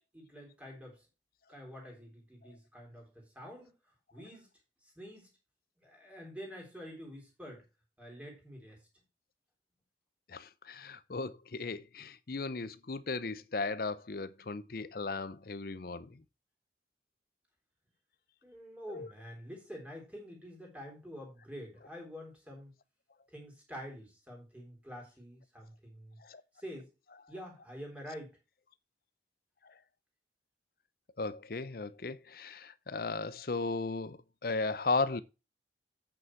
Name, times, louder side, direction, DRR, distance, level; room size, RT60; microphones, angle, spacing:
voice 1, 0.1-1.1 1.5-3.7 4.1-4.5 4.8-5.3 5.8-7.6 8.0-8.8 18.4-22.7 23.3-26.2 26.5-26.9 27.3-28.4, equal, 10° right, 3.5 m, -47 dB
voice 2, 10.3-16.2 18.9-19.1 26.2-26.4 31.2-35.2, left 3 dB, 55° left, 0.6 m, -36 dB
8.5 x 6.3 x 4.5 m
head